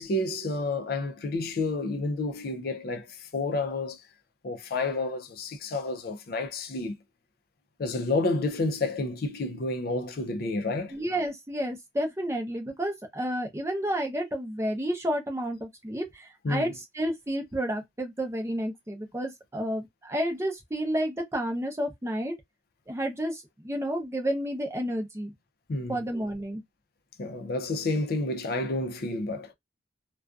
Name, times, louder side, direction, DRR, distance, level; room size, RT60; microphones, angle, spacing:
voice 1, 0.0-4.0 4.4-7.0 7.8-11.0 16.4-16.7 25.7-26.0 27.2-29.5, left 2 dB, 55° left, 0.4 m, -30 dB
voice 2, 10.9-22.3 22.9-25.3 25.9-26.6, equal, 15° right, 0.6 m, -31 dB
2.4 x 2.2 x 2.3 m
head